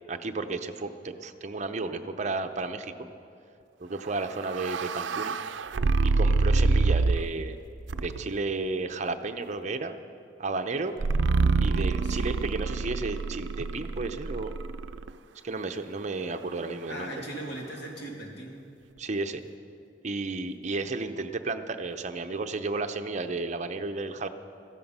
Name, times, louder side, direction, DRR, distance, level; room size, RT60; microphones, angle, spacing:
voice 1, 0.1-3.1 3.8-5.4 6.0-7.6 7.9-10.0 10.4-11.0 11.6-14.5 15.4-17.1 19.0-19.4 20.0-24.3, right 3 dB, 40° right, 7 dB, 0.7 m, -33 dB
sound 1, 4.1-7.4 7.9-8.4 11.0-15.1, right 3 dB, 80° right, 0.4 m, -26 dB
voice 2, 16.9-18.6, right 1 dB, 65° left, -1 dB, 2.7 m, -39 dB
15.0 x 14.0 x 5.5 m, 2.6 s
head